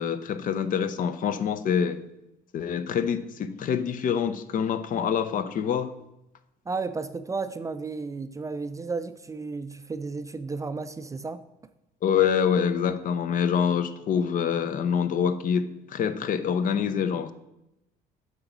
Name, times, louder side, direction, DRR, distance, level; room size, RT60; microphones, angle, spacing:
voice 1, 0.0-2.0 2.5-5.9 12.0-17.3, left 7 dB, 50° left, 12 dB, 0.6 m, -26 dB
voice 2, 6.7-11.4, right 4 dB, 20° right, 11 dB, 0.4 m, -33 dB
7.7 x 3.9 x 6.0 m, 0.89 s
cardioid pair, 110°, 17 cm